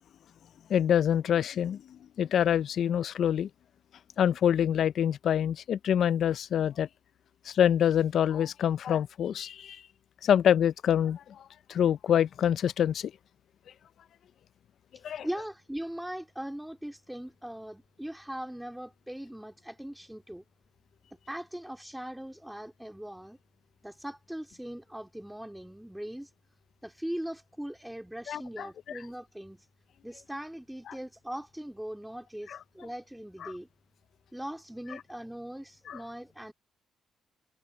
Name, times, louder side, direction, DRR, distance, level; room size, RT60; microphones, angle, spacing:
voice 1, 0.7-3.5 4.2-6.9 7.5-9.8 10.2-11.4 11.7-13.1 15.0-15.3 28.3-28.7 33.4-33.5 35.9-36.0, left 9 dB, 65° left, 0.5 m, -26 dB
voice 2, 14.9-20.4 21.3-23.4 23.8-26.3 26.8-29.7 30.0-33.7 34.3-36.5, right 1 dB, 5° right, 3.7 m, -40 dB
cardioid pair, 90°, 0 cm